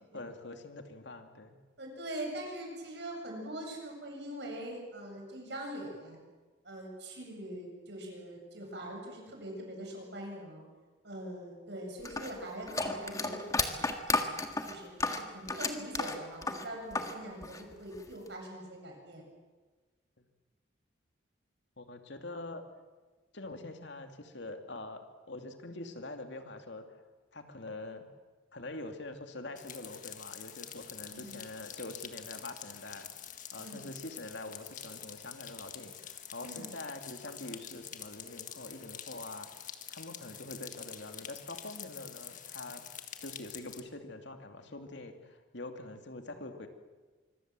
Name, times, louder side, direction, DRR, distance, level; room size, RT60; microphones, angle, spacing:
voice 1, 0.1-1.6 21.8-22.6 23.3-27.0 27.3-28.1 28.5-33.1 33.5-42.8 43.2-46.7, left 2 dB, 65° left, 6 dB, 2.5 m, -44 dB
voice 2, 1.8-6.2 6.6-10.6 11.0-13.8 14.1-14.4 14.6-19.2 31.1-31.5 33.6-33.9 36.4-36.7, right 1 dB, 60° right, 1 dB, 7.9 m, -43 dB
sound 1, 12.0-17.2 17.4-18.3, left 3 dB, 15° left, 1.7 m, -33 dB
sound 2, 29.6-43.8, left 9 dB, 40° left, 1.7 m, -46 dB
25.5 x 23.5 x 7.7 m, 1.3 s
head